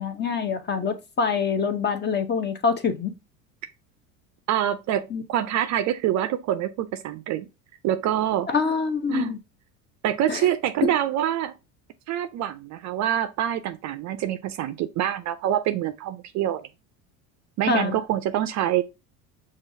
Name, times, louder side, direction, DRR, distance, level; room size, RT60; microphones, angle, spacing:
voice 1, 0.0-3.1 5.1-5.2 8.5-9.4 10.3-10.5 10.8-11.0 17.7-18.0, left 5 dB, 25° left, 0.7 m, -25 dB
voice 2, 4.5-7.5 7.8-8.5 9.1-9.3 10.0-11.5 12.1-16.7 17.6-18.8, right 11 dB, 40° right, 0.4 m, -25 dB
6.0 x 2.4 x 2.6 m
hypercardioid pair, 80°, 45 cm